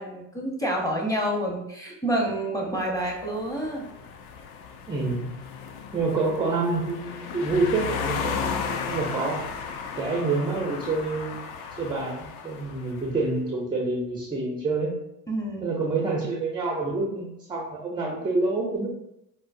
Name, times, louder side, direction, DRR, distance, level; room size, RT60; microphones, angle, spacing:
voice 1, 0.0-3.8 15.3-15.7, right 1 dB, 5° left, 0 dB, 0.7 m, -28 dB
sound 1, 2.9-13.2, left 6 dB, 50° left, 0.5 m, -35 dB
voice 2, 4.9-5.3 5.9-9.5 10.0-11.4 11.8-14.9 15.6-18.9, right 3 dB, 10° right, -1 dB, 0.3 m, -27 dB
4.4 x 2.0 x 2.4 m, 0.82 s
hypercardioid pair, 85°, 50 cm